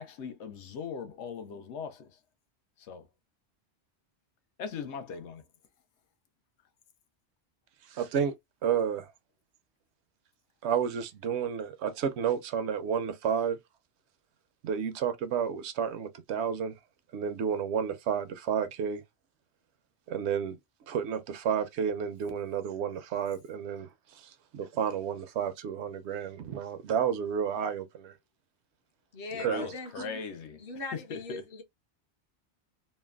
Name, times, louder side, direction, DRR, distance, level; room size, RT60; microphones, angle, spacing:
voice 1, 0.0-2.2 2.8-3.0 4.6-5.4 29.3-30.6 30.9-31.4, left 6 dB, 85° left, 0.9 m, -39 dB
voice 2, 7.9-8.3 8.6-9.1 10.6-13.6 14.6-16.7 17.1-19.0 20.1-20.6 20.9-23.9 24.1-28.1 29.4-29.7, right 7 dB, 80° right, 0.8 m, -31 dB
voice 3, 29.1-30.2 30.6-31.6, left 3 dB, 60° left, 0.8 m, -40 dB
3.1 x 2.1 x 2.2 m
omnidirectional pair, 1.2 m